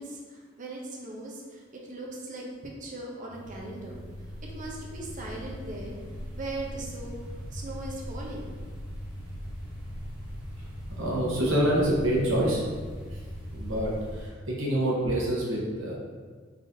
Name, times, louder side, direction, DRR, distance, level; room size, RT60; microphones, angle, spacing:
voice 1, 0.0-1.6 1.9-2.4 2.8-4.0 4.5-6.0 6.3-7.2 7.5-8.5, right 2 dB, 40° right, -2 dB, 0.7 m, -39 dB
sound 1, 3.3-14.3, equal, 10° right, 1.2 m, -39 dB
voice 2, 11.0-12.6 13.5-15.9, right 1 dB, 85° right, -4 dB, 1.1 m, -26 dB
3.9 x 3.6 x 2.7 m, 1.5 s
head